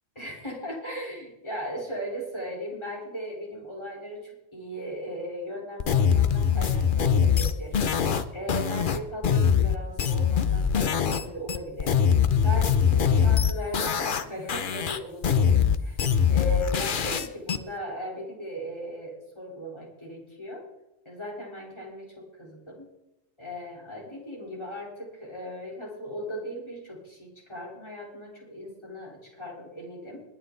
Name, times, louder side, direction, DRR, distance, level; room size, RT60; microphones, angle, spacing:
voice 1, 0.2-7.8 8.3-12.0 12.4-16.0 16.3-20.7 21.1-22.9 23.4-30.2, equal, 25° left, -3 dB, 4.1 m, -37 dB
sound 1, 5.8-11.2 11.5-14.2 14.5-17.6, left 7 dB, 50° left, 0.9 m, -23 dB
21.5 x 9.7 x 3.9 m, 0.92 s
omnidirectional pair, 1.1 m